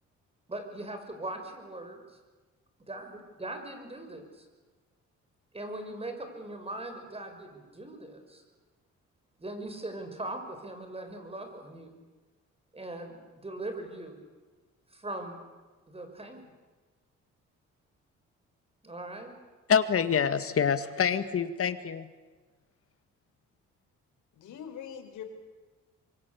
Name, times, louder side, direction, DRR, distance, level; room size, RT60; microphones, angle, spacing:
voice 1, 0.5-2.0 2.9-4.4 5.5-8.4 9.4-11.9 12.7-14.2 14.9-15.4 15.9-16.5 18.8-19.3, right 2 dB, 20° right, 6 dB, 6.1 m, -40 dB
voice 2, 19.7-22.1, left 7 dB, 50° left, 11 dB, 2.0 m, -26 dB
voice 3, 24.3-25.2, left 8 dB, 80° left, 5 dB, 4.9 m, -42 dB
26.5 x 23.5 x 8.4 m, 1.3 s
cardioid pair, 90°, 30 cm